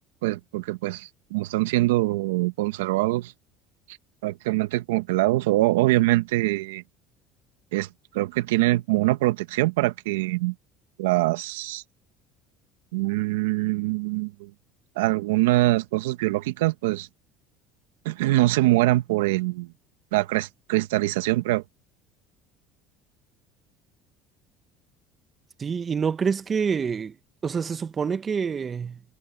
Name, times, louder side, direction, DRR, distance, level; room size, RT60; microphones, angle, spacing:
voice 1, 0.2-3.3 3.9-4.0 4.2-6.8 7.7-10.5 11.0-11.8 12.9-14.5 15.0-17.1 18.0-19.7 20.1-21.6, right 18 dB, 85° right, 1.2 m, -24 dB
voice 2, 25.6-27.1 27.4-29.0, right 6 dB, 35° right, 1.2 m, -27 dB
supercardioid pair, 85°, 0 cm